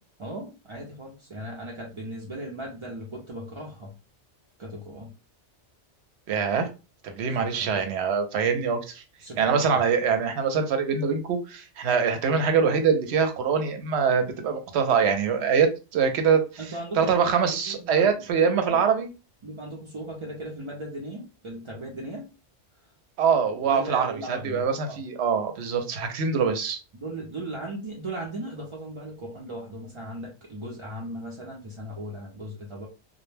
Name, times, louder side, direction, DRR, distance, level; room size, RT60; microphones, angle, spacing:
voice 1, 0.2-3.9 4.6-5.1 7.2-7.8 9.2-9.8 16.6-18.8 19.4-22.3 23.6-25.0 26.9-32.9, right 1 dB, 55° right, 0.3 m, -37 dB
voice 2, 6.3-6.7 7.0-9.0 9.4-16.4 17.0-19.1 23.2-26.8, right 6 dB, 70° right, 0.8 m, -24 dB
2.2 x 2.1 x 3.1 m
omnidirectional pair, 1.2 m